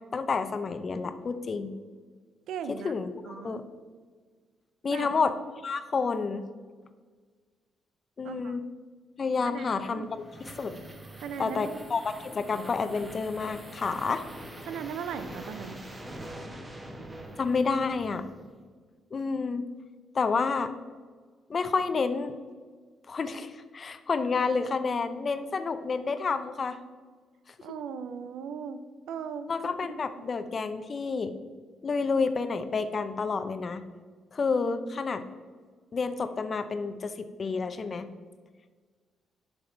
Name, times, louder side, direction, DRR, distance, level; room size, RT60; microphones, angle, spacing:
voice 1, 0.1-1.7 2.7-3.6 4.8-5.3 5.6-6.4 8.2-8.6 9.2-10.8 11.4-14.2 17.4-18.2 19.1-19.6 20.1-20.7 21.5-22.3 23.1-26.8 29.5-31.3 31.8-33.8 34.3-35.2 35.9-38.1, left 4 dB, 40° left, 11 dB, 0.6 m, -29 dB
voice 2, 2.5-2.9 3.3-3.7 4.9-5.1 8.2-8.6 9.5-10.1 11.2-11.9 14.6-15.8 27.6-29.5 30.2-30.3, right 7 dB, 80° right, 11 dB, 0.5 m, -38 dB
sound 1, 9.7-18.6, right 1 dB, 20° right, 1.2 m, -44 dB
6.4 x 6.0 x 4.4 m, 1.5 s
cardioid pair, 90°, 0 cm